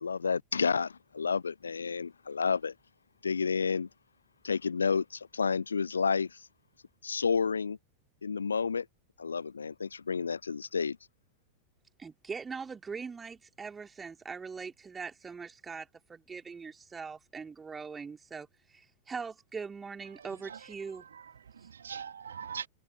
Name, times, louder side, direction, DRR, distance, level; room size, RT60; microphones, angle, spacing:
voice 1, 0.0-2.7 3.2-3.9 4.4-6.4 7.0-7.8 8.2-8.9 9.2-11.0, left 5 dB, 75° left, 0.4 m, -30 dB
voice 2, 12.0-21.0 21.6-21.7, right 5 dB, 15° right, 3.8 m, -42 dB
voice 3, 20.0-22.7, right 7 dB, 70° right, 2.6 m, -43 dB
figure-of-eight pair, 90°, 0 cm